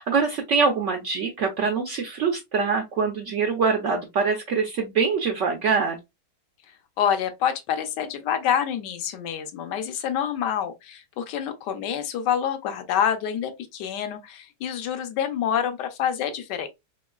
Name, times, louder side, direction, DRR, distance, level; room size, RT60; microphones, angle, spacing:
voice 1, 0.0-6.0, right 5 dB, 85° right, 0.6 m, -24 dB
voice 2, 7.0-16.7, left 9 dB, 75° left, 1.2 m, -27 dB
3.5 x 3.0 x 2.3 m
omnidirectional pair, 1.9 m